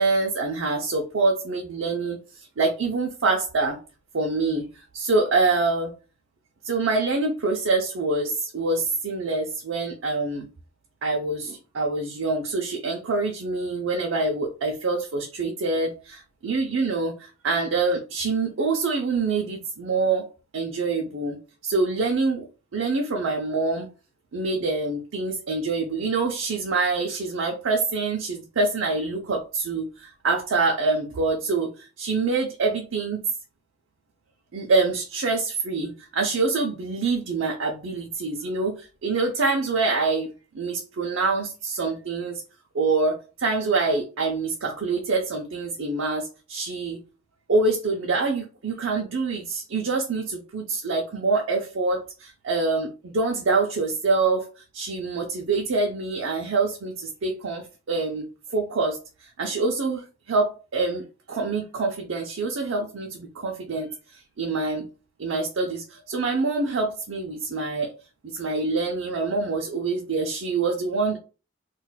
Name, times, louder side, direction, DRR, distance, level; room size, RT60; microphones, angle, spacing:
voice 1, 0.0-3.8 4.1-5.9 6.6-10.5 11.0-20.3 20.5-21.4 21.6-22.5 22.7-23.9 24.3-33.2 34.5-40.3 40.5-42.4 42.7-47.0 47.5-54.5 54.7-64.9 65.2-67.9 68.3-71.2, right 3 dB, 85° right, 0.5 m, -25 dB
2.4 x 2.2 x 3.9 m
head